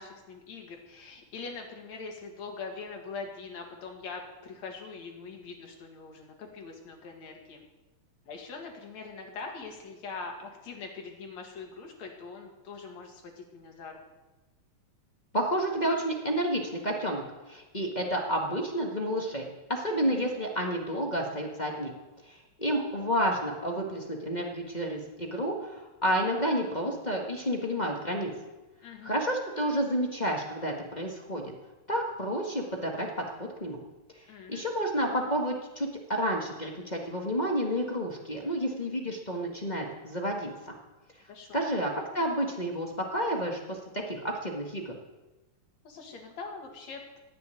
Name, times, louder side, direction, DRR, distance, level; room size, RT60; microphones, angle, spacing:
voice 1, 0.0-7.6 8.3-14.0 28.8-29.2 34.3-34.7 41.3-41.6 45.8-47.2, left 4 dB, 65° left, 2 dB, 3.2 m, -42 dB
voice 2, 15.3-21.9 22.3-28.3 29.0-31.5 31.9-33.3 33.6-33.8 34.5-40.7 41.5-44.9, equal, 20° left, -1 dB, 1.1 m, -30 dB
16.5 x 6.8 x 9.3 m, 1.1 s
omnidirectional pair, 3.4 m